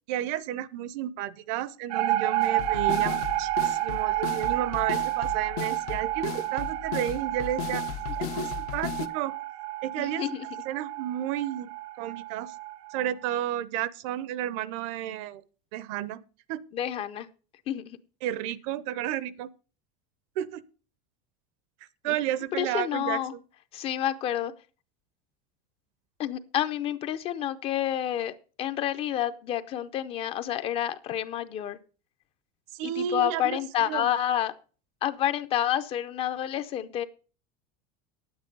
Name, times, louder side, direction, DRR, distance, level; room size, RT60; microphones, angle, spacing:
voice 1, 0.1-7.8 8.2-9.3 9.8-10.2 10.7-11.7 12.0-12.5 12.9-15.4 15.7-16.2 16.5-16.6 18.2-19.5 20.4-20.6 22.0-23.2 32.7-34.1, right 12 dB, 55° right, 0.7 m, -32 dB
sound 1, 1.9-13.1, right 15 dB, 85° right, 1.1 m, -30 dB
sound 2, 2.4-9.1, left 11 dB, 70° left, 1.0 m, -36 dB
voice 2, 10.0-10.4 16.7-17.3 17.7-18.0 22.0-22.2 22.6-23.3 23.7-24.5 26.2-28.3 28.6-31.8 32.8-34.5 35.0-37.0, left 11 dB, 30° left, 0.6 m, -29 dB
9.6 x 8.9 x 5.3 m
supercardioid pair, 170°, 20 cm